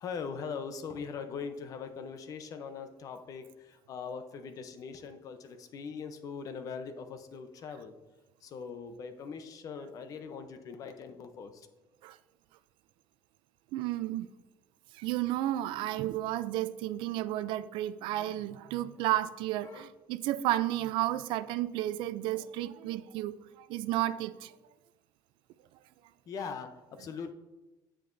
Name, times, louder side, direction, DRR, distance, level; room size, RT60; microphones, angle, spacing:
voice 1, 0.0-7.9 8.4-11.7 19.6-19.9 26.3-26.7 27.0-27.3, left 5 dB, 40° left, 9 dB, 0.7 m, -41 dB
voice 2, 13.7-14.3 14.9-24.5, right 14 dB, 75° right, 15 dB, 0.4 m, -32 dB
8.5 x 7.5 x 2.6 m, 1.1 s
cardioid pair, 160°, 9 cm